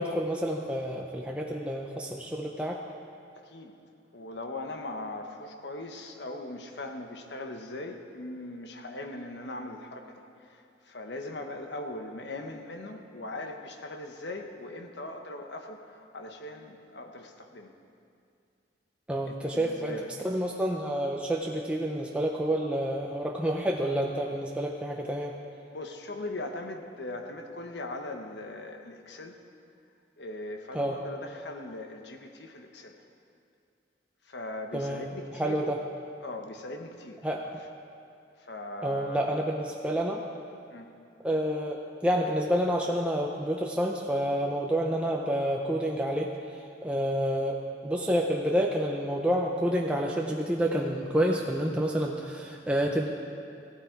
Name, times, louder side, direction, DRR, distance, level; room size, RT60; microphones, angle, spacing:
voice 1, 0.0-2.8 19.1-20.0 20.2-25.3 30.7-31.0 34.7-35.0 35.3-35.8 37.2-37.6 38.8-40.2 41.2-46.3 46.8-47.6 47.8-53.1, equal, 5° right, -1 dB, 0.6 m, -29 dB
voice 2, 3.4-3.7 4.1-17.7 19.3-20.1 25.7-29.3 30.2-33.0 34.3-35.6 36.2-37.3 38.4-39.4 40.7-40.9, left 2 dB, 65° left, 5 dB, 1.1 m, -40 dB
16.0 x 13.0 x 4.5 m, 2.4 s
head